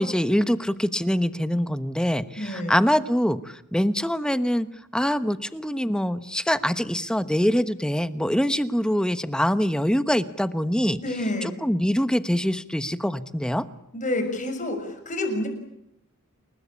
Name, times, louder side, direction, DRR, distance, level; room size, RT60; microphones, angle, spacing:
voice 1, 0.0-4.7 4.9-11.0 11.4-13.6, equal, 5° left, 12 dB, 1.1 m, -24 dB
voice 2, 2.4-2.8 11.0-11.5 13.9-15.5, left 1 dB, 35° left, 6 dB, 6.6 m, -28 dB
28.5 x 21.0 x 8.7 m, 0.78 s
head